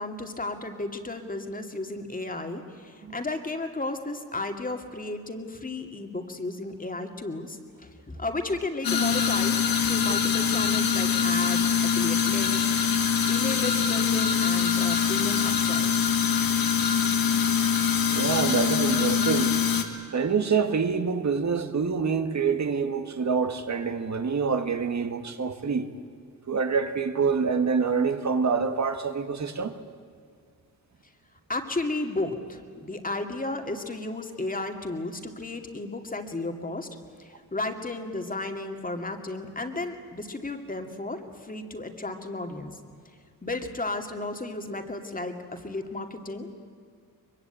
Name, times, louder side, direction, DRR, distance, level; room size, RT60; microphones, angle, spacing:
voice 1, 0.0-12.7 13.3-16.1 31.5-36.9 37.2-42.8 43.4-46.5, left 2 dB, 25° left, 2.4 m, -33 dB
sound 1, 8.8-19.8, left 7 dB, 85° left, 2.2 m, -24 dB
voice 2, 18.1-19.6 20.1-25.9 26.5-29.8, right 5 dB, 50° right, 1.9 m, -26 dB
23.0 x 23.0 x 9.1 m
wide cardioid pair, 100°, 34 cm